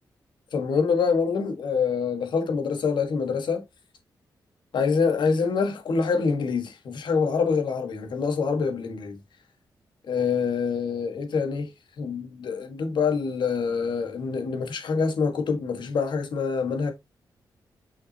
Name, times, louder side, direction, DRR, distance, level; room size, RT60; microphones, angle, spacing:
voice 1, 0.5-3.6 4.7-9.2 10.1-11.7 12.0-16.9, left 5 dB, 80° left, 1.6 m, -25 dB
5.9 x 5.8 x 2.9 m
wide cardioid pair, 105°, 8 cm